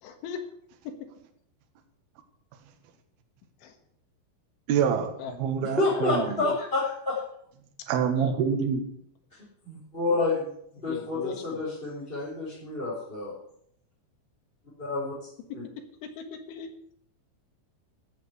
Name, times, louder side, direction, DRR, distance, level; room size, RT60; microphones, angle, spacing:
voice 1, 0.0-0.4 3.6-3.8 5.2-5.5 5.9-6.6 8.1-8.3 10.8-11.6 16.0-16.7, left 6 dB, 70° left, 6 dB, 3.6 m, -39 dB
voice 2, 4.7-5.1 5.4-6.2 7.9-8.8, right 7 dB, 65° right, 5 dB, 2.9 m, -25 dB
voice 3, 5.6-7.2 9.6-10.5 10.8-13.4 14.8-15.1 15.5-15.6, left 3 dB, 10° left, -8 dB, 4.0 m, -29 dB
14.5 x 7.1 x 8.2 m, 0.68 s
omnidirectional pair, 6.0 m